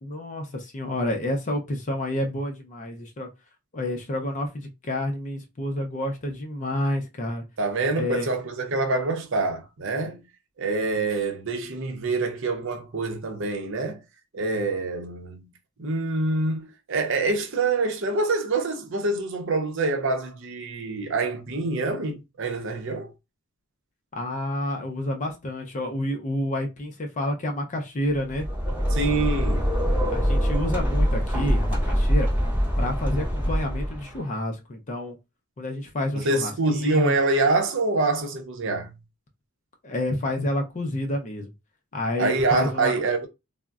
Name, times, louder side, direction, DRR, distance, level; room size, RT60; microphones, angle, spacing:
voice 1, 0.0-3.3 3.7-7.4 7.9-8.3 24.1-28.5 30.1-32.3 32.8-35.2 35.6-37.1 39.8-41.5 41.9-42.9, left 1 dB, 35° left, 0.5 m, -29 dB
voice 2, 7.6-10.2 10.6-14.0 14.3-15.5 15.8-23.1 28.9-29.7 36.1-38.9 42.2-43.3, right 3 dB, 55° right, 0.6 m, -26 dB
sound 1, 28.2-34.2, equal, 10° right, 0.7 m, -24 dB
3.5 x 2.0 x 2.3 m
head